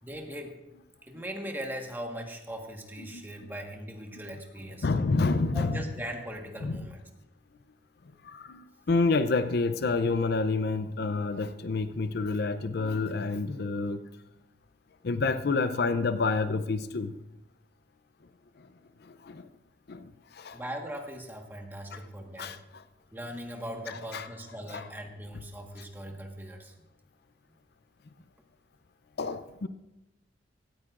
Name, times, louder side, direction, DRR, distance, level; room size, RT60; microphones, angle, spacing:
voice 1, 0.0-0.6 1.0-4.9 5.5-7.0 20.5-22.6 23.1-26.7, equal, 10° right, 2 dB, 1.5 m, -40 dB
voice 2, 4.8-5.8 6.6-6.8 8.2-14.0 15.0-17.1 18.6-18.7 19.0-19.5 19.9-20.6 21.9-22.0 22.4-22.8 23.9-24.3 24.7-24.8 29.2-29.7, left 3 dB, 60° left, 11 dB, 0.5 m, -29 dB
17.0 x 13.5 x 2.5 m, 0.95 s
head